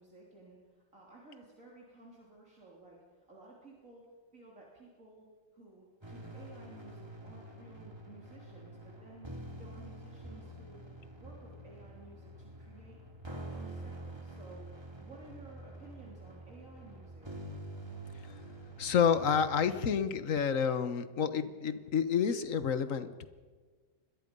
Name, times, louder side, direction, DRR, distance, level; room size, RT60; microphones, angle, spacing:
voice 1, 0.0-3.0 3.3-5.3 5.5-9.3 9.6-10.9 11.1-13.0 13.3-14.7 15.0-17.3, right 3 dB, 50° right, -4 dB, 3.9 m, -55 dB
sound 1, 6.0-19.8, right 1 dB, 15° right, 2.5 m, -47 dB
voice 2, 18.8-23.3, left 7 dB, 55° left, 12 dB, 1.3 m, -29 dB
27.0 x 21.5 x 5.4 m, 1.5 s
omnidirectional pair, 1.8 m